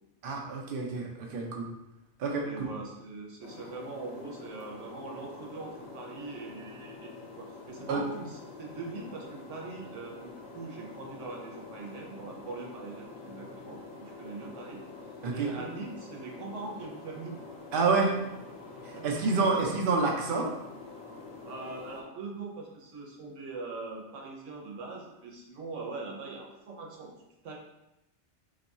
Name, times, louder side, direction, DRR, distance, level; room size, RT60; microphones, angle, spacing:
voice 1, 0.2-1.7 2.2-2.7 7.9-8.0 15.2-15.6 17.7-18.1 18.8-20.6, right 4 dB, 55° right, 0 dB, 0.8 m, -28 dB
voice 2, 2.4-14.8 15.3-17.4 18.9-19.1 19.4-19.5 21.4-27.1 27.4-27.6, right 3 dB, 85° right, 0 dB, 1.2 m, -42 dB
sound 1, 3.4-22.0, left 3 dB, 60° left, 1.1 m, -46 dB
3.5 x 3.1 x 4.1 m, 0.90 s
omnidirectional pair, 1.2 m